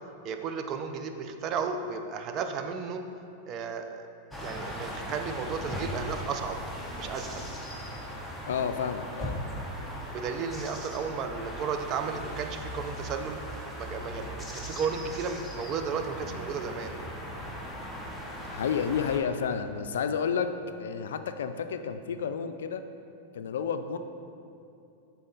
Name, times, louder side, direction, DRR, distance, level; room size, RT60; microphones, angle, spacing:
voice 1, 0.2-3.0 3.5-4.0 4.4-6.6 6.9-7.5 10.1-17.0, right 5 dB, 40° right, 7 dB, 0.4 m, -34 dB
sound 1, 4.3-19.2, equal, ahead, 0.8 m, -38 dB
voice 2, 8.5-9.4 18.5-20.5 20.8-22.8 23.3-24.0, left 7 dB, 85° left, 9 dB, 0.3 m, -30 dB
6.5 x 4.0 x 3.8 m, 2.7 s
hypercardioid pair, 130°, 0 cm